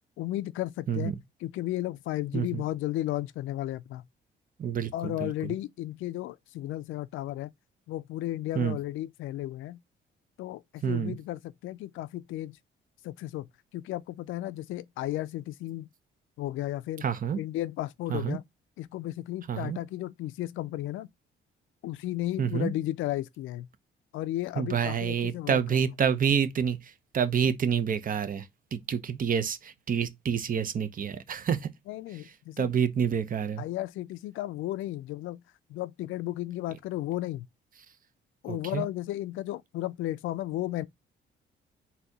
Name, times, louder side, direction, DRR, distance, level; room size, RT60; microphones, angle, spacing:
voice 1, 0.2-1.1 1.4-4.0 4.9-7.5 7.9-9.8 10.4-12.6 13.0-13.5 13.7-15.9 16.4-17.0 17.4-18.4 18.8-21.1 21.8-23.7 24.1-25.8 31.9-32.7 33.6-35.4 35.7-37.5 38.4-40.9, left 15 dB, 85° left, 0.5 m, -34 dB
voice 2, 4.6-5.5 8.5-8.8 10.8-11.2 17.0-17.4 18.1-18.4 19.5-19.8 22.4-22.7 24.6-31.7 32.1-32.2 32.6-33.6 38.5-38.9, right 7 dB, 45° right, 0.7 m, -28 dB
4.0 x 2.8 x 4.6 m
cardioid pair, 90°, 20 cm